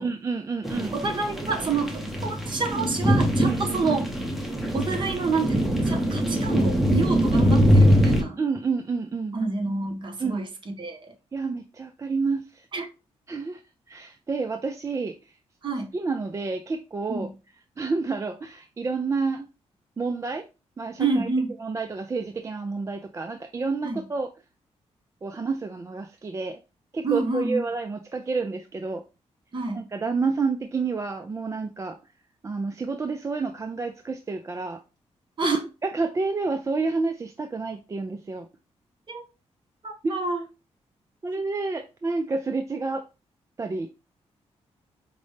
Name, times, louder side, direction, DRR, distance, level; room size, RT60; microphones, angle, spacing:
voice 1, 0.0-0.9 3.4-3.8 8.4-9.4 10.2-10.4 11.3-12.7 13.3-13.6 13.9-15.1 15.9-17.3 17.8-19.5 20.0-20.4 20.8-21.3 21.6-24.3 25.2-26.6 26.9-29.0 29.7-32.0 32.4-34.8 35.4-38.5 40.0-40.2 41.2-43.0 43.6-43.9, right 4 dB, 25° right, 0.3 m, -29 dB
sound 1, 0.6-8.2, equal, ahead, 0.7 m, -22 dB
voice 2, 0.9-4.1 4.7-8.4 9.3-11.1 12.7-12.9 15.6-15.9 17.1-17.3 21.0-21.5 23.8-24.0 27.0-27.6 29.5-29.9 35.4-35.6 39.1-39.2 39.8-40.5, right 3 dB, 45° right, 0.9 m, -28 dB
5.0 x 2.1 x 3.2 m
cardioid pair, 95°, 12 cm